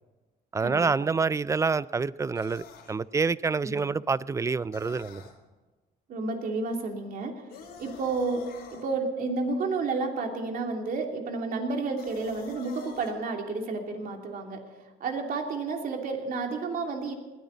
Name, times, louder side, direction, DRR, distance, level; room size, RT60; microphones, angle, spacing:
voice 1, 0.5-5.2, right 4 dB, 20° right, 0.3 m, -27 dB
sound 1, 2.3-3.0 4.7-5.4 7.5-8.9 12.0-13.1, left 6 dB, 70° left, 3.6 m, -47 dB
voice 2, 6.1-7.5 7.8-8.4 8.7-14.6 15.0-17.1, right 3 dB, 55° right, 2.9 m, -31 dB
20.5 x 13.5 x 4.1 m
cardioid pair, 110°, 17 cm